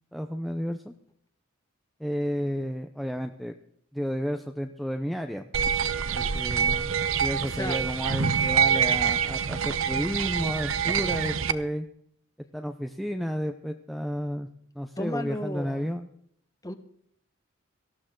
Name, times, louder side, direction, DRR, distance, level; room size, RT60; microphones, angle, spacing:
voice 1, 0.1-0.9 2.0-3.5 3.9-5.5 6.1-6.9 7.2-11.9 12.5-14.5 14.8-16.1, equal, ahead, 5 dB, 0.8 m, -32 dB
sound 1, 5.5-11.5, right 7 dB, 75° right, 0.8 m, -26 dB
voice 2, 7.4-7.8 15.0-15.9 16.6-16.7, left 1 dB, 15° left, 8 dB, 1.5 m, -34 dB
18.5 x 15.0 x 3.9 m, 0.68 s
head